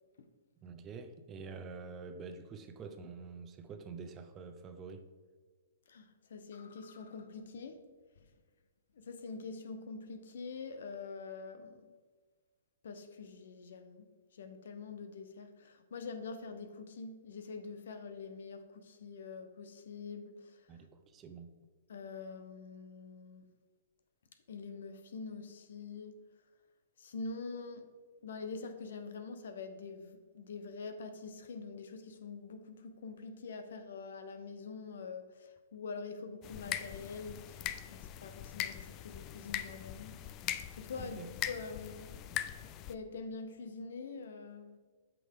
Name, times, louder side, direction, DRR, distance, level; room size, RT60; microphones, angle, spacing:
voice 1, 0.6-5.0 20.7-21.5 41.0-41.3, right 5 dB, 25° right, 0.7 m, -47 dB
voice 2, 5.9-8.3 8.9-12.0 12.8-20.8 21.9-23.5 24.5-26.2 27.0-27.9 28.2-40.1 40.4-41.2 41.5-42.1 42.5-44.8, left 4 dB, 70° left, 0.9 m, -45 dB
sound 1, 36.4-42.9, left 11 dB, 30° left, 0.4 m, -41 dB
8.3 x 6.1 x 3.7 m
hypercardioid pair, 125°, 0 cm